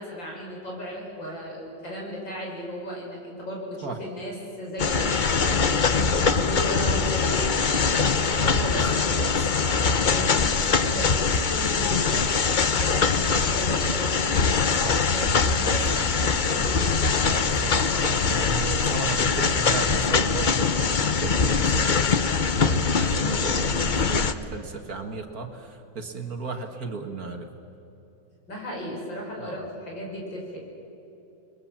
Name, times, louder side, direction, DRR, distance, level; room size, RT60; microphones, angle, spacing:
voice 1, 0.0-9.4 10.1-14.3 15.1-17.3 28.5-30.6, equal, 85° left, -2 dB, 6.9 m, -35 dB
sound 1, 4.8-24.3, left 5 dB, 45° left, 0.6 m, -23 dB
voice 2, 8.5-8.9 14.8-15.0 15.9-16.1 17.2-27.5 29.4-29.6, right 4 dB, 55° right, 4 dB, 2.2 m, -35 dB
29.5 x 22.0 x 7.5 m, 2.9 s
omnidirectional pair, 2.0 m